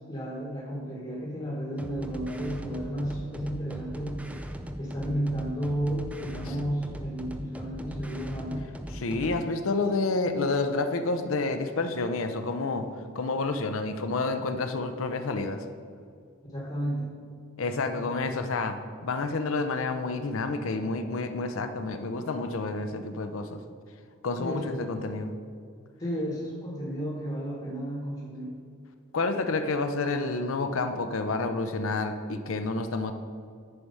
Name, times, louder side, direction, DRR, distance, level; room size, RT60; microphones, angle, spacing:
voice 1, 0.1-4.4 4.8-8.7 16.5-17.1 17.9-18.1 24.4-25.0 26.0-28.5, equal, 25° left, -3 dB, 1.1 m, -33 dB
sound 1, 1.8-9.5, equal, 5° right, 0.3 m, -39 dB
voice 2, 8.9-12.9 13.1-15.6 17.6-18.8 19.0-23.6 24.2-25.3 29.1-33.1, left 3 dB, 75° left, 8 dB, 0.6 m, -29 dB
9.8 x 4.6 x 5.5 m, 2.3 s
head